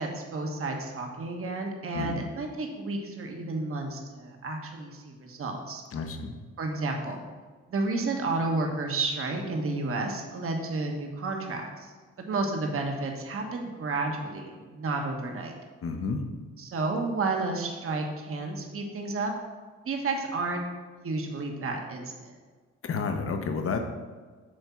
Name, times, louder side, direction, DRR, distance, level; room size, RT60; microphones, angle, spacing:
voice 1, 0.0-5.8 6.6-7.2 7.7-15.6 16.6-19.3 19.8-20.6 21.0-22.4, right 3 dB, 45° right, 2 dB, 1.2 m, -31 dB
voice 2, 5.9-6.4 15.8-16.3 22.8-23.8, left 4 dB, 45° left, 6 dB, 0.9 m, -30 dB
7.7 x 3.6 x 5.7 m, 1.4 s
cardioid pair, 90°, 30 cm